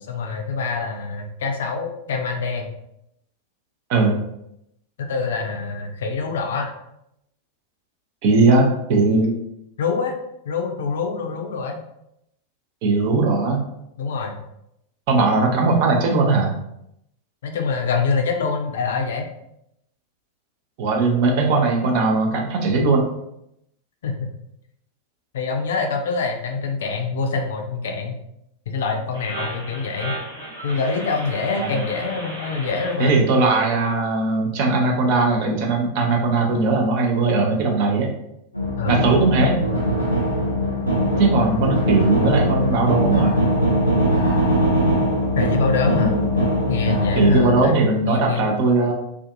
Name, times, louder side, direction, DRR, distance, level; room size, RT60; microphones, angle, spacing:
voice 1, 0.1-2.7 5.0-6.7 9.8-10.2 10.4-11.8 14.0-14.4 17.4-19.3 24.0-24.3 25.3-28.1 28.7-30.2 30.6-33.2 38.8-39.1 45.4-46.2 46.7-47.8 48.1-48.4, left 4 dB, 60° left, 4 dB, 0.4 m, -25 dB
voice 2, 8.2-9.3 12.8-13.6 15.1-16.5 20.8-23.1 31.5-31.8 33.0-38.1 38.9-39.6 41.2-43.4 46.0-46.2 47.2-48.9, right 3 dB, 45° right, 1 dB, 0.6 m, -19 dB
sound 1, 29.1-32.9, right 1 dB, 70° right, 1.1 m, -34 dB
sound 2, 38.5-47.7, equal, 90° right, 0.6 m, -21 dB
2.5 x 2.3 x 2.5 m, 0.81 s
figure-of-eight pair, 90°, 0 cm